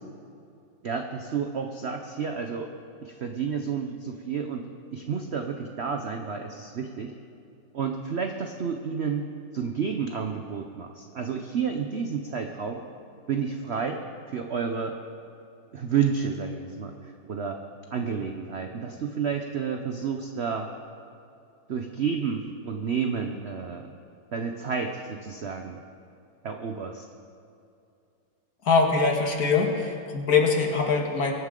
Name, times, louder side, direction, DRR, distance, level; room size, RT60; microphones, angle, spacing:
voice 1, 0.8-2.7 3.0-4.6 4.9-7.1 7.7-9.3 9.5-12.8 13.3-14.0 14.3-15.0 15.7-17.6 17.9-20.7 21.7-23.9 24.3-25.8 26.4-27.0, right 6 dB, 65° right, 4 dB, 0.6 m, -30 dB
voice 2, 28.6-31.3, left 4 dB, 55° left, 2 dB, 1.8 m, -23 dB
23.0 x 9.5 x 3.8 m, 2.5 s
omnidirectional pair, 2.0 m